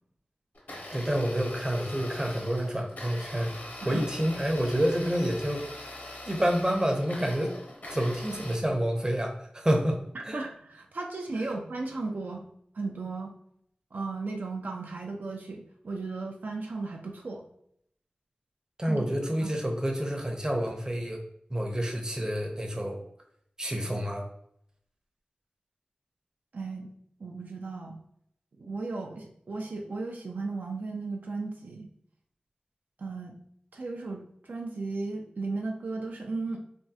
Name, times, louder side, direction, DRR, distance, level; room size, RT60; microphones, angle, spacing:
Domestic sounds home sounds, 0.5-8.5, left 1 dB, 65° left, 0.6 m, -42 dB
voice 1, 0.9-5.6 6.3-7.5 7.9-10.0 10.2-10.4 11.4-11.5 18.8-21.2 21.5-23.0 23.6-24.2, equal, 25° right, 2 dB, 0.6 m, -28 dB
voice 2, 10.1-12.5 12.7-13.3 13.9-17.4 18.8-19.0 19.4-19.6 26.5-26.9 27.2-28.0 28.6-31.9 33.0-33.4 33.7-36.6, right 3 dB, 80° right, 1 dB, 0.4 m, -35 dB
3.4 x 2.0 x 2.7 m, 0.68 s
wide cardioid pair, 60°, 3 cm